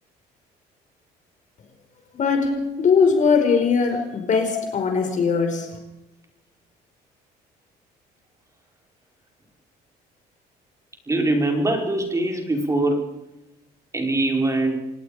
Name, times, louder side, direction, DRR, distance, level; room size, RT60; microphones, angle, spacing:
voice 1, 2.1-5.7, left 5 dB, 45° left, 5.3 m, -20 dB
voice 2, 11.1-13.1 13.9-14.8, right 2 dB, 20° right, 4.9 m, -22 dB
26.5 x 19.5 x 5.1 m
cardioid pair, 110°, 17 cm